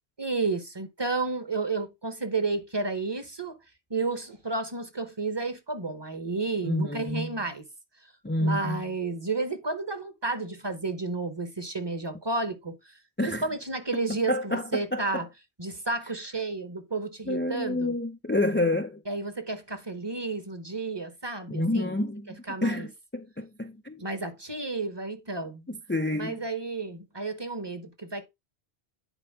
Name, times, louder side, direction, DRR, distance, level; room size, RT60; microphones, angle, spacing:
voice 1, 0.2-3.6 3.9-7.6 8.4-12.8 13.2-15.3 15.6-17.9 19.1-22.0 22.5-22.9 24.0-25.6 26.1-28.3, right 3 dB, 25° right, 0.9 m, -31 dB
voice 2, 6.6-7.3 8.2-8.8 13.2-13.4 14.3-15.2 17.3-19.0 21.5-24.0 25.7-26.4, left 1 dB, 15° left, 0.4 m, -29 dB
10.0 x 4.6 x 3.5 m
omnidirectional pair, 1.1 m